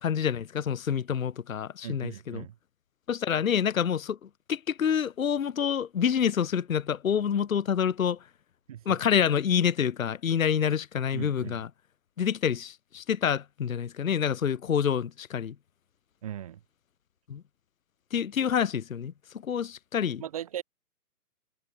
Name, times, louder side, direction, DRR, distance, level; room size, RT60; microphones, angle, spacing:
voice 1, 0.0-2.5 3.1-8.2 8.9-11.7 12.2-15.5 17.3-17.4 18.1-19.1 19.4-20.2, left 8 dB, 60° left, 0.9 m, -27 dB
voice 2, 1.8-2.5 8.7-9.0 11.1-11.6 16.2-16.6 20.2-20.6, right 11 dB, 25° right, 4.5 m, -38 dB
hypercardioid pair, 180°, 46 cm